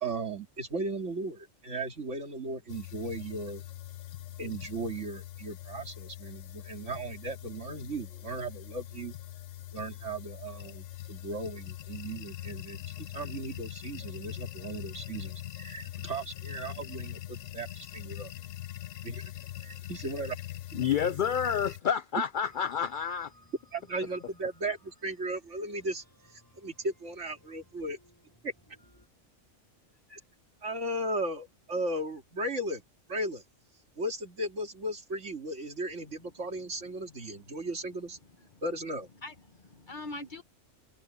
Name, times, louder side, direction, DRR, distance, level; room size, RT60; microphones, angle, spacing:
voice 1, 0.0-3.6 4.4-9.2 9.7-18.3 19.0-19.3 19.6-20.4 20.7-20.9 22.1-22.2 23.7-26.0 26.3-28.0 28.4-28.5 30.1-30.2 30.6-32.8 33.1-33.4 34.0-38.2 38.6-39.1, right 2 dB, 65° right, 2.9 m, -36 dB
sound 1, 2.7-21.8, left 14 dB, 80° left, 1.1 m, -43 dB
voice 2, 20.8-23.3, left 8 dB, 60° left, 0.5 m, -29 dB
sound 2, 22.3-29.1, left 1 dB, 15° left, 6.2 m, -62 dB
voice 3, 38.2-38.6 39.2-40.4, left 2 dB, 40° left, 1.7 m, -44 dB
open air
omnidirectional pair, 1.3 m